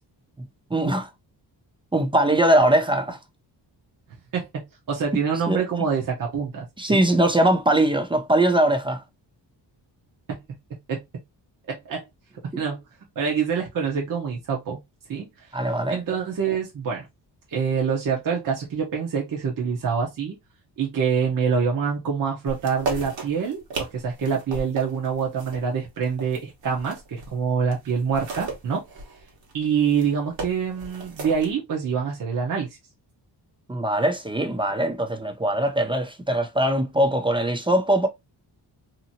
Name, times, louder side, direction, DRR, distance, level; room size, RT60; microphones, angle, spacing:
voice 1, 0.4-1.1 1.9-3.2 5.5-5.6 6.8-9.0 15.5-16.0 33.7-38.1, right 1 dB, 15° right, 0.3 m, -21 dB
voice 2, 4.3-7.0 10.3-10.4 10.9-11.0 11.7-12.1 12.4-12.8 13.2-14.8 15.1-15.5 15.9-17.1 17.5-20.4 20.8-28.8 29.5-32.7, right 6 dB, 45° right, 0.8 m, -26 dB
sound 1, 22.5-27.4 27.7-31.5, right 3 dB, 80° right, 1.3 m, -36 dB
2.9 x 2.7 x 2.6 m
wide cardioid pair, 140°, 44 cm